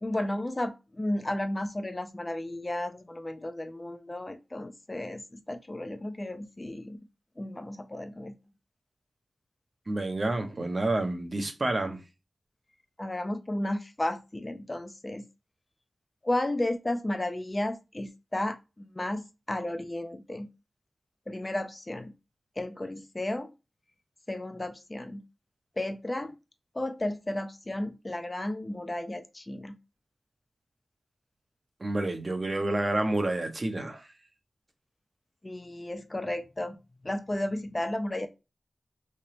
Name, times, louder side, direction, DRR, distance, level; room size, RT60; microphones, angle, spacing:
voice 1, 0.0-7.0 7.4-8.3 13.0-15.2 16.2-20.5 21.3-22.1 22.6-23.5 24.3-25.2 25.8-26.4 26.7-29.8 35.4-36.8 37.0-38.3, left 1 dB, 25° left, 0.4 m, -33 dB
voice 2, 9.9-12.0 31.8-34.1, right 2 dB, 45° right, 0.7 m, -29 dB
3.3 x 2.9 x 2.8 m
wide cardioid pair, 90°, 0 cm